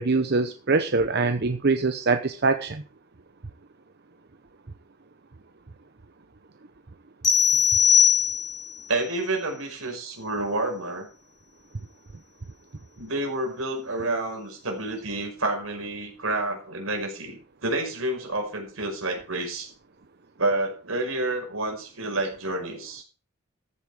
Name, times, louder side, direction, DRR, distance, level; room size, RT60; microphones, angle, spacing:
voice 1, 0.0-2.8, right 3 dB, 50° right, 8 dB, 0.8 m, -23 dB
sound 1, 7.2-8.8, left 8 dB, 20° left, 2.6 m, -20 dB
voice 2, 8.9-11.1 13.0-19.7 20.4-23.0, right 2 dB, 80° right, 2 dB, 5.7 m, -29 dB
14.5 x 8.5 x 4.9 m, 0.36 s
head